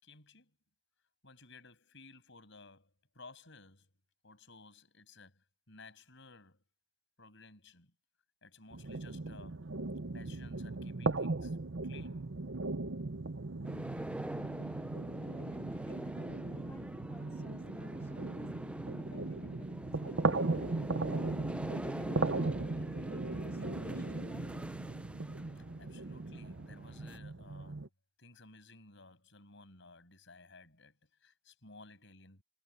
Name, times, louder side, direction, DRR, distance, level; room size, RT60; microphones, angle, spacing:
voice 1, 0.0-0.5 1.2-3.9 4.2-6.6 7.2-7.9 8.4-9.7 10.1-11.6 11.8-12.5 25.6-27.9 28.2-32.4, left 3 dB, 60° left, 7.5 m, -57 dB
sound 1, 8.7-27.9, right 3 dB, 60° right, 0.8 m, -38 dB
sound 2, 13.6-27.2, right 1 dB, 5° right, 0.4 m, -44 dB
voice 2, 15.2-21.3 21.7-24.5, equal, 10° left, 1.9 m, -56 dB
head